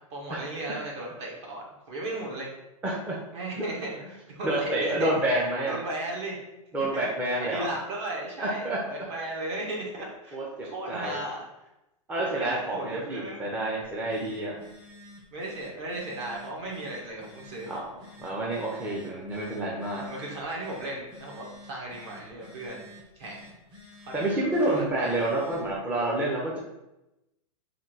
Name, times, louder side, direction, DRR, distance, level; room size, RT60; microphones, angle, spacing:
voice 1, 0.1-2.5 3.3-5.2 5.7-6.4 6.9-7.1 7.4-10.4 10.6-11.5 12.2-13.8 15.3-17.7 19.9-22.9 23.1-23.4 24.0-25.1, right 1 dB, 50° right, -1 dB, 1.3 m, -36 dB
voice 2, 2.8-3.2 3.5-3.7 4.4-5.8 6.7-7.7 8.4-8.8 10.3-11.2 12.1-14.6 17.7-20.0 24.1-26.6, right 1 dB, 5° right, -4 dB, 0.4 m, -29 dB
Telephone, 13.8-25.8, left 2 dB, 25° right, 0.9 m, -50 dB
3.6 x 2.6 x 4.5 m, 0.94 s
hypercardioid pair, 150°, 18 cm